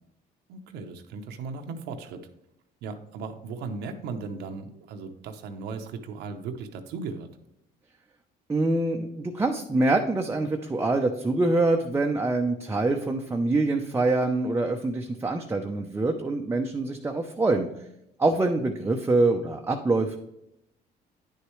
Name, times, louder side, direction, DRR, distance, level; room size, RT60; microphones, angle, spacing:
voice 1, 0.5-2.3 2.8-7.3, right 4 dB, 85° right, 5 dB, 0.9 m, -37 dB
voice 2, 8.5-17.7 18.2-20.2, right 2 dB, 15° right, 3 dB, 0.6 m, -25 dB
10.0 x 6.7 x 3.2 m, 0.80 s
cardioid pair, 110°, 17 cm